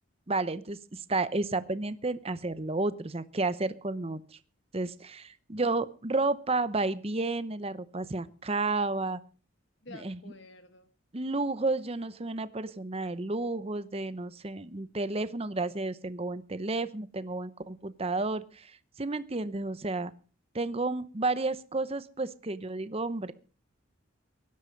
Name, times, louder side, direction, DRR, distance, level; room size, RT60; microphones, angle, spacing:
voice 1, 0.3-4.2 4.7-9.2 10.0-10.2 11.1-18.7 19.0-20.1 20.5-23.3, right 3 dB, 30° right, 14 dB, 0.8 m, -31 dB
voice 2, 9.8-10.9, left 3 dB, 60° left, 8 dB, 1.2 m, -49 dB
17.0 x 12.0 x 5.3 m, 0.38 s
head